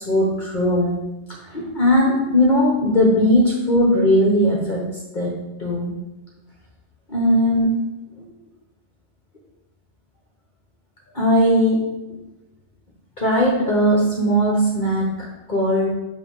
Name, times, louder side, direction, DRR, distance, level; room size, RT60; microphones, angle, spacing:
voice 1, 0.1-1.0 1.5-6.0 7.1-7.8 11.1-11.9 13.2-15.9, equal, 45° left, -3 dB, 1.2 m, -19 dB
7.9 x 3.2 x 4.7 m, 0.98 s
omnidirectional pair, 1.2 m